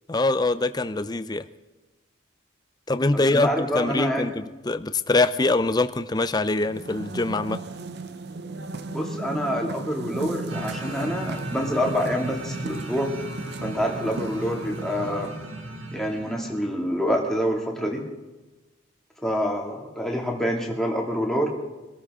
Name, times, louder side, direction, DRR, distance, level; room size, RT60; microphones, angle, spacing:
voice 1, 0.1-1.4 2.9-7.6, left 2 dB, 20° left, 11 dB, 0.5 m, -24 dB
voice 2, 3.1-4.3 8.9-13.1 13.6-15.3 15.9-18.1 19.2-21.5, equal, ahead, -1 dB, 2.2 m, -26 dB
sound 1, 6.6-15.5, right 2 dB, 50° right, 0.6 m, -36 dB
sound 2, 10.5-16.7, right 1 dB, 70° right, 2.1 m, -36 dB
23.5 x 13.5 x 3.7 m, 1.1 s
head